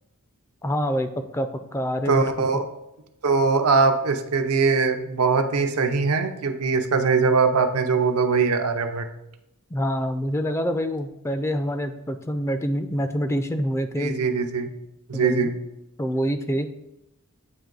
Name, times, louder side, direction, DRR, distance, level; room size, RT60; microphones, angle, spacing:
voice 1, 0.6-2.2 9.7-14.2 15.1-15.5 16.0-16.7, equal, 10° left, 8 dB, 0.3 m, -26 dB
voice 2, 2.1-2.7 3.2-9.1 14.0-14.7 15.1-15.5, right 4 dB, 85° right, 6 dB, 0.6 m, -21 dB
8.6 x 2.9 x 3.8 m, 0.87 s
head